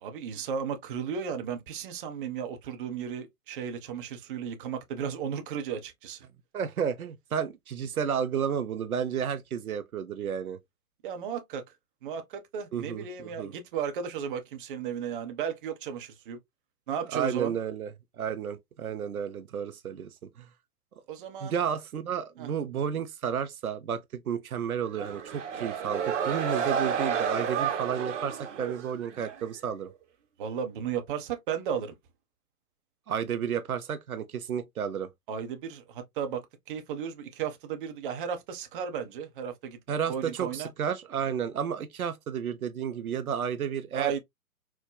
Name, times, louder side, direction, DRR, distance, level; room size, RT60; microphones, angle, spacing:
voice 1, 0.0-6.2 11.0-11.6 12.0-16.4 16.9-17.5 21.1-21.6 22.4-22.5 30.4-32.0 35.3-39.8 40.1-40.7 43.9-44.2, right 7 dB, 35° right, 0.7 m, -34 dB
voice 2, 6.5-10.6 12.7-13.5 17.1-17.9 18.2-20.5 21.4-29.9 33.1-35.1 39.9-44.2, right 8 dB, 70° right, 0.8 m, -32 dB
sound 1, 24.9-29.4, right 7 dB, 50° right, 1.0 m, -31 dB
4.6 x 2.2 x 2.2 m
figure-of-eight pair, 125°, 46 cm